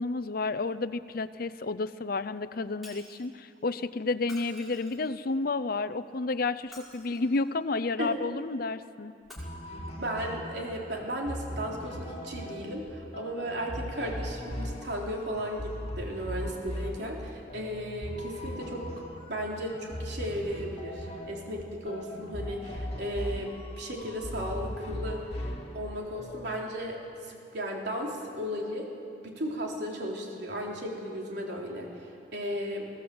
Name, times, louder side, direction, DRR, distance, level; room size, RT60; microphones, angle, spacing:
voice 1, 0.0-9.1, left 3 dB, 55° left, 14 dB, 0.6 m, -31 dB
Shatter, 2.8-3.3 4.2-5.2 6.6-7.5 9.2-9.3, left 1 dB, ahead, 5.0 m, -50 dB
sound 1, 9.4-26.6, equal, 35° left, 2.3 m, -39 dB
voice 2, 10.0-19.0 19.3-28.9 29.2-32.9, equal, 65° right, -1 dB, 3.7 m, -35 dB
21.5 x 17.0 x 7.9 m, 2.5 s
head